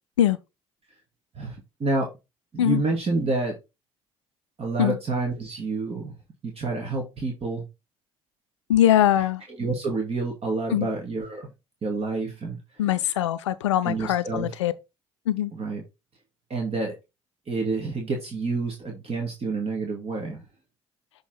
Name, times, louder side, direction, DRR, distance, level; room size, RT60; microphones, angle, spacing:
voice 1, 1.8-2.1 2.5-3.6 4.6-6.1 6.4-7.6 9.6-11.5 11.8-12.6 13.8-14.5 15.5-15.8 16.5-16.9 17.5-20.4, right 3 dB, 40° right, 2.0 m, -28 dB
voice 2, 8.7-9.4 10.7-10.9 12.8-14.7 15.3-15.5, left 12 dB, 85° left, 0.4 m, -22 dB
7.1 x 3.6 x 3.8 m
hypercardioid pair, 55°, 15 cm